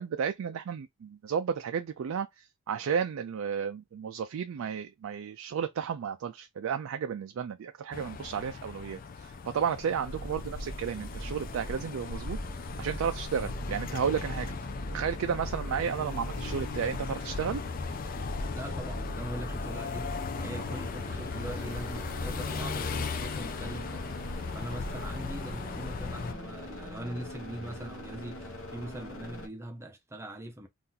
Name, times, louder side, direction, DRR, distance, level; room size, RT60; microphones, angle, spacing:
voice 1, 0.0-14.5 14.9-17.6, right 7 dB, 70° right, 0.3 m, -33 dB
sound 1, 7.9-26.3, left 4 dB, 40° left, 0.3 m, -38 dB
sound 2, 10.1-29.5, equal, 60° left, 1.0 m, -41 dB
voice 2, 18.5-24.2 24.5-30.7, right 1 dB, 10° right, 0.5 m, -41 dB
2.7 x 2.5 x 3.8 m
head